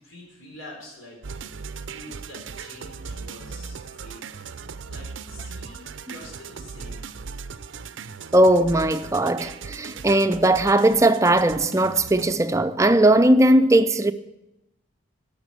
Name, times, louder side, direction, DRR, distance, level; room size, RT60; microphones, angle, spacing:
voice 1, 0.0-4.5 4.9-7.1, left 1 dB, 85° left, 3.9 m, -46 dB
sound 1, 1.2-12.3, right 5 dB, 70° right, 0.5 m, -38 dB
voice 2, 8.3-14.1, right 1 dB, 15° right, 0.5 m, -18 dB
11.5 x 7.3 x 8.3 m
head